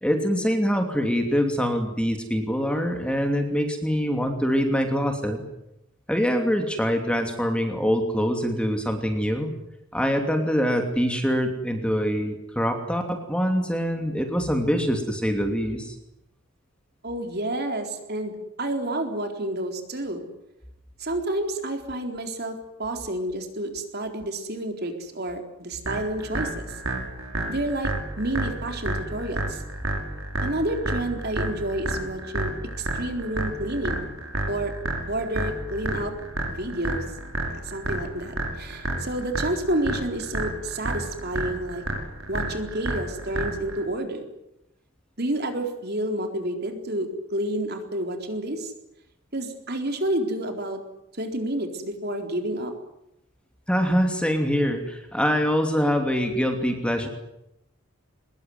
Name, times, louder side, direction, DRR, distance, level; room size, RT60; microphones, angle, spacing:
voice 1, 0.0-5.4 6.1-9.5 9.9-13.0 13.3-15.9 53.7-57.1, equal, 5° left, 4 dB, 2.8 m, -24 dB
voice 2, 17.0-20.3 21.0-26.7 27.5-29.6 30.4-32.5 32.8-34.1 34.5-34.7 35.1-36.1 36.5-37.0 37.5-41.8 42.3-44.2 45.2-48.7 49.3-50.8 51.2-52.7, right 1 dB, 45° right, 5 dB, 4.0 m, -29 dB
sound 1, 25.8-43.8, right 2 dB, 70° right, 5.7 m, -30 dB
23.5 x 21.0 x 9.5 m, 0.84 s
head